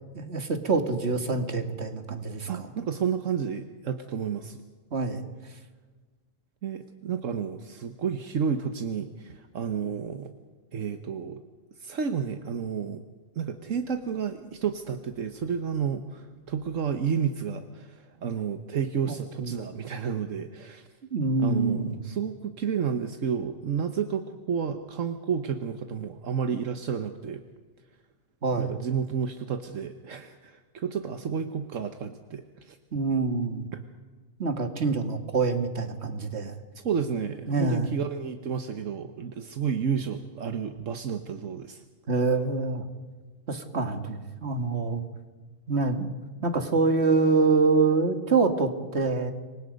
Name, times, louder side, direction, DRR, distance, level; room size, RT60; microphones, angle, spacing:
voice 1, 0.1-2.7 4.9-5.2 19.1-19.5 21.1-22.0 28.4-28.7 32.9-33.7 34.4-36.5 37.5-37.9 42.1-42.9 43.5-45.0 45.7-46.1 46.4-49.3, right 4 dB, 55° right, 7 dB, 2.2 m, -26 dB
voice 2, 2.5-4.6 6.6-10.3 10.7-11.4 11.8-13.0 13.3-20.9 21.4-27.4 28.6-32.8 33.7-33.8 36.8-41.8, right 7 dB, 75° right, 8 dB, 1.5 m, -31 dB
28.0 x 24.0 x 5.3 m, 1.4 s
omnidirectional pair, 1.3 m